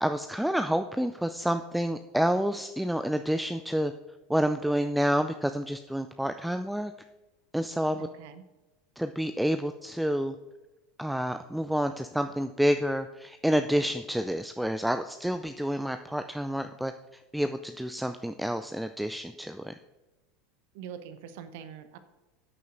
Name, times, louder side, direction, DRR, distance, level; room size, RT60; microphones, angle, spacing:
voice 1, 0.0-3.9 4.3-6.9 7.5-8.1 9.0-10.3 11.0-16.9 17.3-19.8, equal, ahead, 8 dB, 0.4 m, -29 dB
voice 2, 8.0-8.4 20.7-22.0, right 8 dB, 55° right, 11 dB, 0.8 m, -43 dB
14.0 x 9.2 x 2.6 m, 1.1 s
figure-of-eight pair, 80°, 0 cm